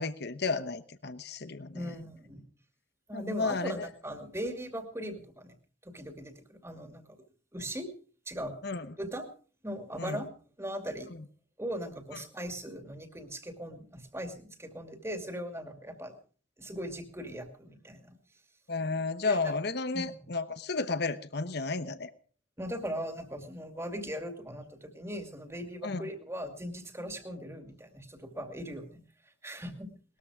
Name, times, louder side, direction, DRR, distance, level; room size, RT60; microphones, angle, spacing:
voice 1, 0.0-1.9 3.1-3.9 8.6-8.9 10.0-10.2 18.7-22.1 25.8-26.0, left 3 dB, 55° left, 12 dB, 1.0 m, -32 dB
voice 2, 1.7-2.4 3.1-5.6 5.8-7.0 7.5-7.9 8.3-8.5 9.0-9.3 9.6-10.3 10.6-11.1 11.6-16.1 16.6-18.2 19.3-19.5 19.9-20.1 22.6-29.9, equal, 15° right, 6 dB, 2.4 m, -39 dB
20.5 x 13.5 x 5.0 m, 0.42 s
head